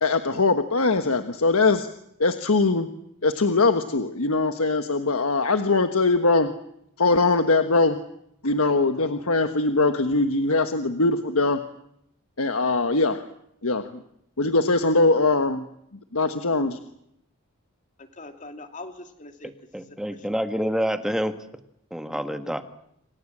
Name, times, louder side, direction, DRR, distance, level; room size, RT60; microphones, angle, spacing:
voice 1, 0.0-1.9 2.2-2.9 3.2-6.5 7.0-8.0 8.4-11.6 12.4-13.2 13.6-14.0 14.4-15.6 16.1-16.8, left 3 dB, 75° left, 1.4 m, -21 dB
voice 2, 18.0-19.5 20.1-20.3 22.1-22.6, left 2 dB, 35° left, 2.7 m, -42 dB
voice 3, 19.7-21.3 21.9-22.6, equal, 5° right, 1.5 m, -27 dB
28.0 x 25.5 x 7.5 m
head